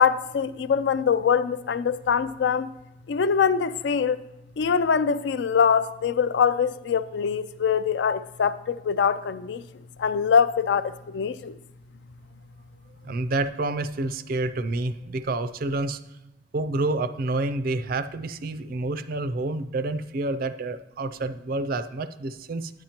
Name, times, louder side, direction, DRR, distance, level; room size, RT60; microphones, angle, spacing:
voice 1, 0.0-2.7 3.1-4.2 4.6-9.6 10.0-11.6, left 6 dB, 70° left, 0.3 m, -23 dB
voice 2, 13.0-16.0 16.5-22.7, right 2 dB, 50° right, 0.4 m, -28 dB
9.4 x 9.0 x 2.9 m
head